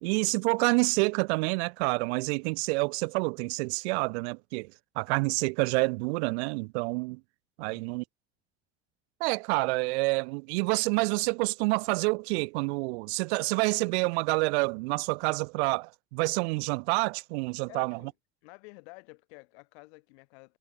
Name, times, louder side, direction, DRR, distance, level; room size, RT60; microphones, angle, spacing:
voice 1, 0.0-7.2 7.6-8.0 9.2-18.0, right 28 dB, 85° right, 0.7 m, -28 dB
voice 2, 7.6-8.0 17.7-18.1 18.4-20.6, left 29 dB, 85° left, 6.9 m, -51 dB
supercardioid pair, 115°, 32 cm